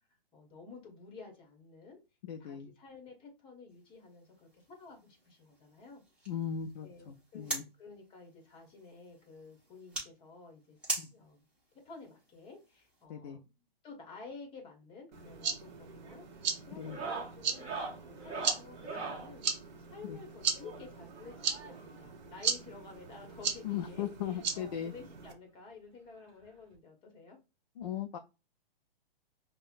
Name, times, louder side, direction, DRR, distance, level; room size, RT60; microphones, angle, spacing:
voice 1, 0.1-2.0 2.4-6.0 6.8-10.8 11.1-11.4 11.8-17.7 18.0-19.5 19.8-27.4, left 4 dB, 15° left, 2 dB, 1.0 m, -52 dB
voice 2, 2.2-2.7 6.3-7.6 11.0-11.1 13.1-13.4 16.8-17.0 20.1-20.2 23.6-24.9 27.8-28.2, left 9 dB, 40° left, 5 dB, 0.4 m, -38 dB
sound 1, 3.7-13.0, right 2 dB, 5° right, 1.2 m, -45 dB
sound 2, 15.1-25.3, right 6 dB, 45° right, 0.8 m, -38 dB
sound 3, 15.2-15.6 15.9-16.2 16.8-19.3 20.6-22.0 23.0-23.1 23.3-23.5 23.9-24.0 25.3-25.4 26.7-26.8, right 4 dB, 20° right, 1.0 m, -42 dB
5.4 x 2.1 x 2.5 m, 0.28 s
hypercardioid pair, 145°, 30 cm